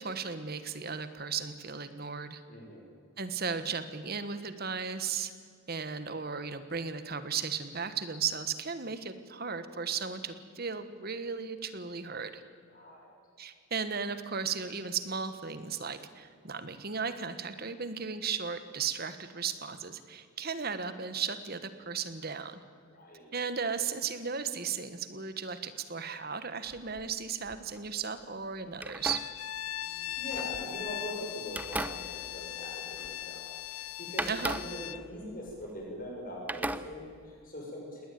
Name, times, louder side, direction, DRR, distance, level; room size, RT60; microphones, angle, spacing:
voice 1, 0.0-2.4 3.2-5.3 5.7-12.4 13.4-22.6 23.3-29.2 34.3-34.6, right 6 dB, 45° right, 12 dB, 1.4 m, -35 dB
voice 2, 2.5-2.9 12.7-13.1 22.9-23.3 29.7-38.1, equal, 40° left, -1 dB, 6.8 m, -42 dB
sound 1, 26.7-27.9 28.7-31.0 31.5-33.4 33.6-33.7 34.2-36.2 36.5-37.5, right 1 dB, 10° right, 0.6 m, -39 dB
Bowed string instrument, 29.0-35.0, left 12 dB, 90° left, 0.5 m, -39 dB
20.5 x 18.5 x 9.3 m, 2.2 s
head